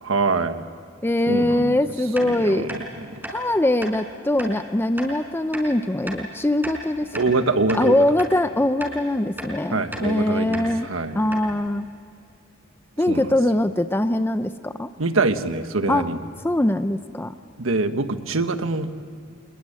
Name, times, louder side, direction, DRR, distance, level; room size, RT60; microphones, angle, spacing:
voice 1, 0.0-0.7 1.3-1.8 2.2-3.1 7.1-8.0 9.7-11.3 13.1-13.3 15.0-16.2 17.6-18.9, right 3 dB, 85° right, 9 dB, 1.4 m, -24 dB
voice 2, 1.0-2.7 3.3-7.1 7.7-10.9 11.1-11.9 13.0-14.9 15.9-16.1 16.4-17.3, left 1 dB, 10° left, 10 dB, 0.5 m, -22 dB
sound 1, 2.2-2.3 2.7-2.8 3.2-3.4 3.8-4.0 4.4-4.5 5.0-5.1 5.5-5.7 6.1-6.2 6.6-7.4 7.7-7.9 8.2-8.3 8.8-9.0 9.4-9.5 9.9-10.1 10.5-10.7 11.0-11.1 11.3-11.5, right 1 dB, 10° right, 4.9 m, -34 dB
26.0 x 21.0 x 8.7 m, 2.5 s
head